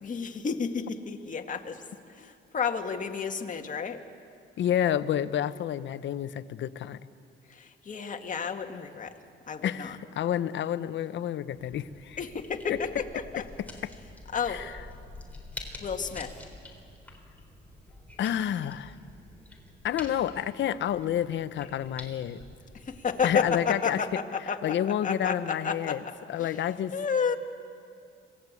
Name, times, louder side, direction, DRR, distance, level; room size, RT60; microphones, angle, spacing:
voice 1, 0.0-4.0 7.5-9.2 9.5-10.0 12.2-13.5 14.3-14.7 15.8-16.4 22.7-24.8 25.0-26.6 26.9-27.4, left 6 dB, 40° left, 4 dB, 1.8 m, -32 dB
voice 2, 4.6-7.0 9.6-12.2 14.5-14.7 18.2-18.9 19.8-22.4 23.2-24.0 24.6-26.0 26.3-26.9, left 10 dB, 70° left, 14 dB, 0.9 m, -29 dB
sound 1, 11.5-23.6, left 2 dB, 5° left, 3.9 m, -47 dB
26.0 x 18.5 x 8.4 m, 2.4 s
cardioid pair, 90°, 20 cm